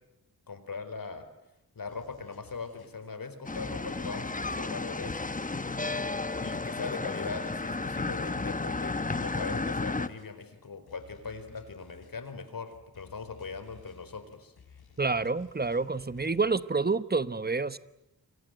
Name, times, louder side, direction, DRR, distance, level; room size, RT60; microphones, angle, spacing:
voice 1, 0.5-1.3 1.7-5.2 6.4-14.5, left 4 dB, 65° left, 10 dB, 4.5 m, -40 dB
sound 1, 1.9-16.6, left 6 dB, 90° left, 5.5 m, -57 dB
sound 2, 3.4-10.1, left 3 dB, 20° left, 1.1 m, -33 dB
voice 2, 15.0-17.8, right 4 dB, 25° right, 14 dB, 1.1 m, -28 dB
29.5 x 24.5 x 7.9 m, 0.89 s
wide cardioid pair, 80°, 37 cm